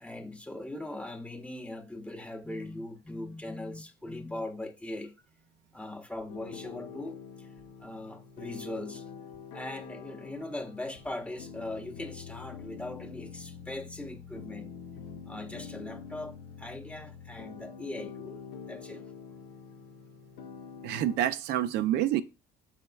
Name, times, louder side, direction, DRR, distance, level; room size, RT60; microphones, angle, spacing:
voice 1, 0.0-5.3 5.7-7.5 7.8-9.1 9.5-14.7 15.2-19.1, left 1 dB, 5° left, 0.5 m, -40 dB
sound 1, 6.3-21.2, left 6 dB, 85° left, 0.6 m, -46 dB
voice 2, 20.8-22.2, right 12 dB, 80° right, 0.4 m, -27 dB
5.6 x 4.1 x 2.2 m
cardioid pair, 110°, 17 cm